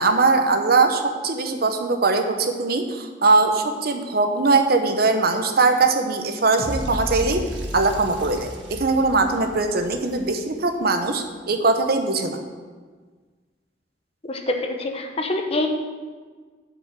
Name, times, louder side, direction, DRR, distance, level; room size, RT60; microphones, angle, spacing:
voice 1, 0.0-7.5 7.7-12.4, right 3 dB, 60° right, 6 dB, 0.9 m, -21 dB
sound 1, 6.6-10.7, equal, 85° right, 1.5 m, -33 dB
voice 2, 14.3-15.7, left 2 dB, 35° left, 4 dB, 1.0 m, -25 dB
7.8 x 5.2 x 7.5 m, 1.5 s
head